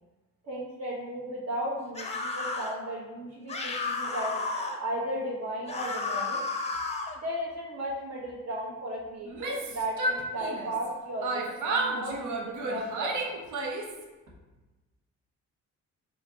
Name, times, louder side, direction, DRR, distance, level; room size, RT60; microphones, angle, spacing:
voice 1, 0.4-4.3 4.8-6.4 7.2-13.3, right 1 dB, 60° right, -8 dB, 1.3 m, -35 dB
sound 1, 1.9-2.8 3.5-4.8 5.7-7.2, left 3 dB, 20° left, 0.6 m, -32 dB
Yell, 9.2-10.9 11.2-14.0, right 2 dB, 75° right, 0.8 m, -32 dB
4.4 x 2.8 x 3.6 m, 1.2 s
cardioid pair, 90°, 30 cm